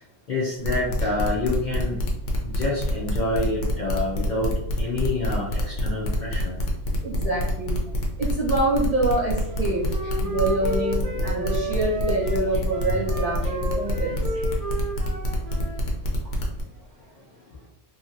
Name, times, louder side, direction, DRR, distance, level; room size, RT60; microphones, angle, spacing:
voice 1, 0.3-2.0 2.4-4.5 4.8-6.6, left 2 dB, 50° left, -5 dB, 0.6 m, -27 dB
sound 1, 0.6-16.6, equal, 80° left, 1.0 m, -27 dB
voice 2, 7.0-7.8 8.2-9.8 10.2-14.2, right 2 dB, 35° right, -6 dB, 0.8 m, -25 dB
Wind instrument woodwind instrument, 9.5-15.8, right 2 dB, 70° right, 0.8 m, -32 dB
2.8 x 2.7 x 2.6 m, 0.84 s
omnidirectional pair, 1.2 m